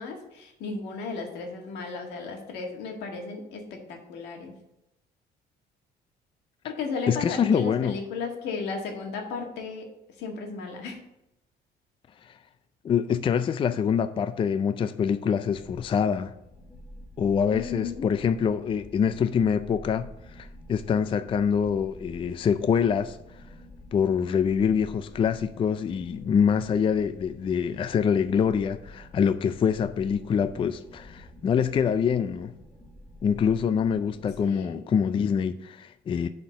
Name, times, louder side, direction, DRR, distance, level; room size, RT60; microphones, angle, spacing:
voice 1, 0.0-4.5 6.6-9.9 10.2-11.0 17.5-18.1 34.4-34.7, left 4 dB, 85° left, 1.8 m, -35 dB
voice 2, 7.1-8.0 12.2-12.3 12.8-16.3 17.2-23.2 23.9-32.5 33.2-36.3, left 7 dB, 30° left, 0.4 m, -25 dB
sound 1, 15.5-34.4, equal, 10° left, 1.3 m, -48 dB
7.9 x 4.4 x 6.5 m
cardioid pair, 110°, 17 cm